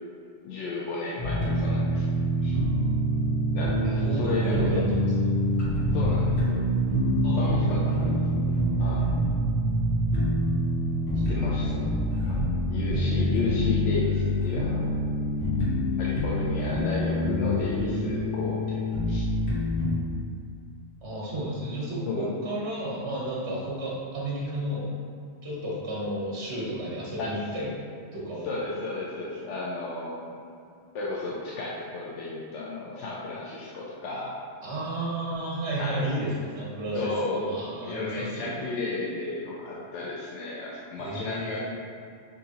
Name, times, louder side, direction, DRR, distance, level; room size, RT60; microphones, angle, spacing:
voice 1, 0.4-2.1 2.4-2.6 3.5-4.7 5.9-6.7 7.3-9.0 11.3-11.9 12.3-12.4 12.7-14.9 16.0-18.8 19.1-19.3 22.1-22.3 27.2-27.3 28.4-30.3 30.9-34.4 35.8-36.1 36.9-41.6, left 3 dB, 80° left, -5 dB, 0.9 m, -33 dB
sound 1, 1.2-19.9, left 2 dB, 65° left, 1.4 m, -27 dB
sound 2, 1.2-10.8, right 6 dB, 15° left, 1.1 m, -28 dB
voice 2, 3.8-5.2 7.2-7.8 11.2-11.5 12.9-13.4 21.0-24.9 25.4-27.7 28.1-28.5 34.6-38.7 41.0-41.6, right 1 dB, 70° right, -7 dB, 1.5 m, -32 dB
6.3 x 2.6 x 2.8 m, 2.4 s
omnidirectional pair, 1.2 m